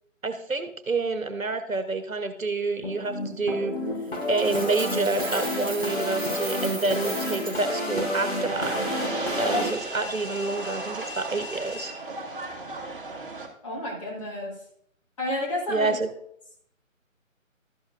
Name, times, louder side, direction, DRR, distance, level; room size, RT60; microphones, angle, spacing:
voice 1, 0.2-3.7 4.3-8.7 9.4-11.9 15.7-16.1, right 3 dB, 80° right, 9 dB, 1.2 m, -28 dB
sound 1, 2.8-9.7, left 1 dB, 50° left, 4.1 m, -30 dB
Coin (dropping), 4.1-7.6, right 2 dB, 15° right, 0.8 m, -37 dB
sound 2, 8.4-13.5, right 2 dB, 40° right, 1.4 m, -35 dB
voice 2, 13.6-14.5 15.2-15.9, left 1 dB, 25° left, -4 dB, 1.8 m, -30 dB
12.5 x 7.3 x 2.6 m, 0.67 s
figure-of-eight pair, 150°, 40 cm